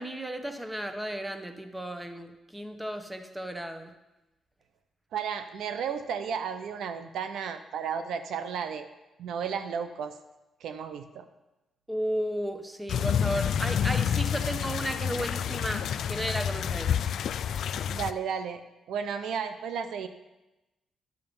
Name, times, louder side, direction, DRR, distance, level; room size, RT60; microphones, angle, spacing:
voice 1, 0.0-3.9 11.9-17.0, equal, 10° right, 7 dB, 1.1 m, -34 dB
voice 2, 5.1-8.9 9.2-10.2 10.6-11.3 17.9-20.1, right 7 dB, 85° right, 9 dB, 0.7 m, -33 dB
sound 1, 12.9-18.1, left 8 dB, 75° left, 0.3 m, -29 dB
11.0 x 6.7 x 5.4 m, 1.0 s
cardioid pair, 75°, 0 cm